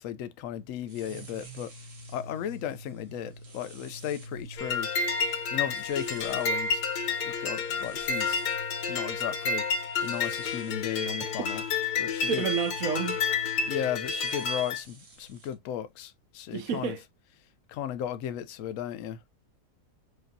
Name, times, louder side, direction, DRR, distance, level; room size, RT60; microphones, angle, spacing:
voice 1, 0.0-1.7 2.1-4.9 5.5-6.8 7.2-8.4 8.9-9.7 10.0-11.6 12.0-12.5 13.6-17.0 17.7-19.2, left 10 dB, 65° left, 0.9 m, -35 dB
sound 1, 0.8-15.5, right 1 dB, 45° right, 1.3 m, -46 dB
sound 2, 4.6-14.8, left 5 dB, 85° left, 1.5 m, -30 dB
voice 2, 12.4-13.2 16.5-17.0, right 7 dB, 70° right, 1.0 m, -30 dB
5.0 x 2.5 x 2.6 m
omnidirectional pair, 1.7 m